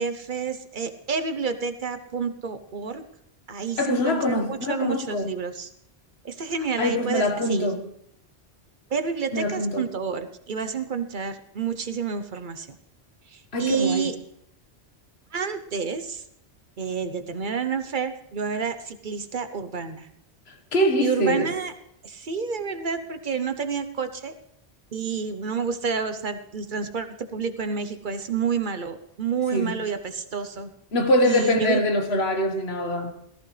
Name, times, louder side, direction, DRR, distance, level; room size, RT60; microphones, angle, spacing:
voice 1, 0.0-3.0 3.5-5.7 6.2-7.7 8.9-12.8 13.3-14.1 15.3-16.2 16.8-20.1 21.0-21.7 22.0-24.3 24.9-30.7 31.2-31.9, right 6 dB, 50° right, 1.0 m, -29 dB
voice 2, 3.8-5.3 6.8-7.8 9.3-9.9 13.5-14.2 20.7-21.5 29.5-29.8 30.9-33.1, left 1 dB, 70° left, 1.7 m, -24 dB
17.5 x 14.0 x 3.3 m
omnidirectional pair, 1.1 m